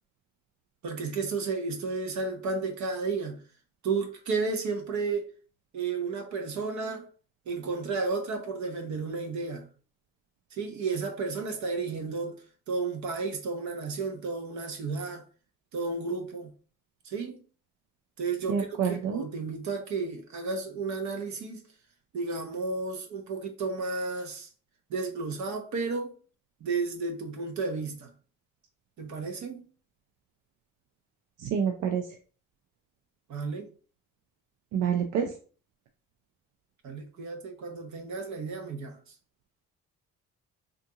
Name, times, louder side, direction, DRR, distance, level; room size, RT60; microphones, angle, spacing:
voice 1, 0.8-3.4 3.8-5.3 5.7-7.1 7.5-9.7 10.5-12.4 12.7-15.2 15.7-16.5 17.0-17.4 18.2-21.6 22.1-24.5 24.9-26.1 26.6-28.1 29.0-29.6 33.3-33.7 36.8-39.0, right 4 dB, 70° right, 0.9 m, -32 dB
voice 2, 18.5-19.2 31.5-32.0 34.7-35.3, right 7 dB, 90° right, 0.5 m, -27 dB
3.6 x 2.5 x 2.8 m
cardioid pair, 90°, 30 cm